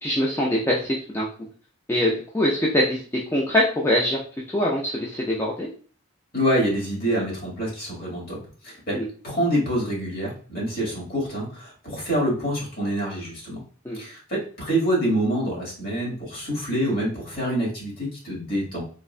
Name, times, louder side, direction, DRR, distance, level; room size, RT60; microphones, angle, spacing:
voice 1, 0.0-1.3 1.9-3.0 3.3-4.2 4.5-5.7 8.9-9.1 13.8-14.0, left 1 dB, 10° left, -4 dB, 0.3 m, -23 dB
voice 2, 6.3-13.6 13.9-18.8, equal, 50° left, -3 dB, 1.3 m, -26 dB
3.5 x 2.1 x 2.4 m, 0.42 s
head